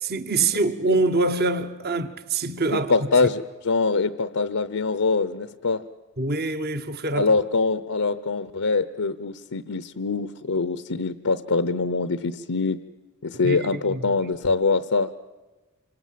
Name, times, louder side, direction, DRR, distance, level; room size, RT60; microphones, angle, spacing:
voice 1, 0.0-3.1 6.2-7.3 13.4-14.1, right 3 dB, 45° right, 1.2 m, -25 dB
voice 2, 2.7-5.8 7.1-12.8 13.2-15.1, left 4 dB, 75° left, 0.8 m, -24 dB
27.0 x 25.0 x 7.6 m
head